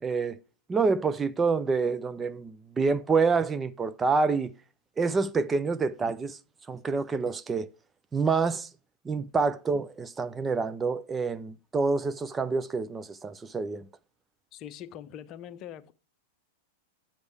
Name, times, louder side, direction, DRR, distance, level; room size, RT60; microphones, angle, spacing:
voice 1, 0.0-0.4 0.7-4.5 5.0-6.4 6.7-7.7 8.1-8.7 9.0-13.9, right 4 dB, 20° right, 0.5 m, -27 dB
voice 2, 14.5-15.9, left 10 dB, 40° left, 0.7 m, -43 dB
8.7 x 7.9 x 3.3 m
figure-of-eight pair, 95°, 0 cm